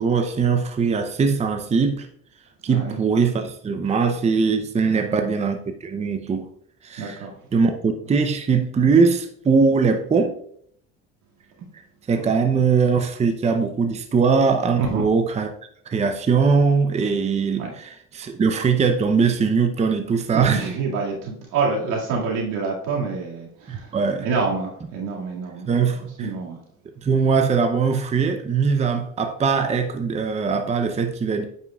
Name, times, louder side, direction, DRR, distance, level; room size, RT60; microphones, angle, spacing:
voice 1, 0.0-2.1 2.6-6.5 6.8-7.2 7.5-10.4 12.1-15.5 15.9-20.7 23.7-24.3 25.7-26.3 27.0-31.4, right 5 dB, 20° right, 0.6 m, -21 dB
voice 2, 2.7-3.0 4.8-5.3 7.0-7.3 14.8-15.1 17.6-17.7 20.3-23.9 24.2-25.7 26.2-26.6, right 4 dB, 75° right, 2.2 m, -27 dB
9.3 x 5.6 x 2.4 m
supercardioid pair, 100°, 31 cm